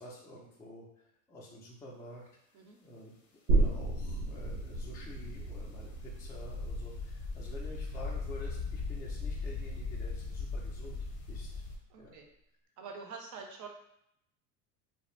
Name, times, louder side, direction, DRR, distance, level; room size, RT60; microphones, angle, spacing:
voice 1, 0.0-2.3 2.8-3.1 3.5-11.5 12.0-12.2, left 1 dB, 5° left, -4 dB, 0.3 m, -49 dB
sound 1, 3.5-10.8 11.1-11.2, right 2 dB, 85° right, 0.7 m, -34 dB
sound 2, 6.3-11.8, left 3 dB, 40° left, 0.6 m, -38 dB
voice 2, 11.9-12.2 12.8-13.7, right 5 dB, 40° right, 2 dB, 0.6 m, -46 dB
2.3 x 2.0 x 3.0 m, 0.76 s
hypercardioid pair, 90°, 48 cm